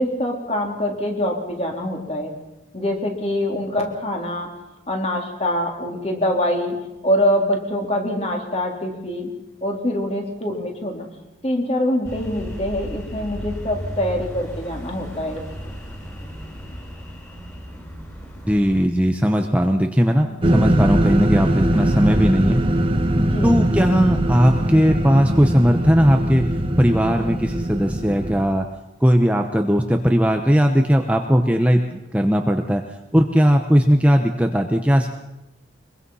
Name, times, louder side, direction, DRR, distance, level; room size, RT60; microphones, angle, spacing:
voice 1, 0.0-2.3 2.7-4.5 4.9-6.8 7.0-9.3 9.6-11.1 11.4-15.4 20.4-20.8 23.2-23.7, left 1 dB, 30° left, 2 dB, 3.5 m, -24 dB
sound 1, 12.0-18.9, equal, 15° left, 4.4 m, -35 dB
voice 2, 18.5-20.3 20.5-22.6 23.4-26.5 26.8-28.6 29.0-32.8 33.1-35.1, equal, 5° right, 4 dB, 1.0 m, -18 dB
sound 2, 20.4-28.4, right 1 dB, 25° right, 1.4 m, -21 dB
23.5 x 22.5 x 5.6 m, 0.97 s
head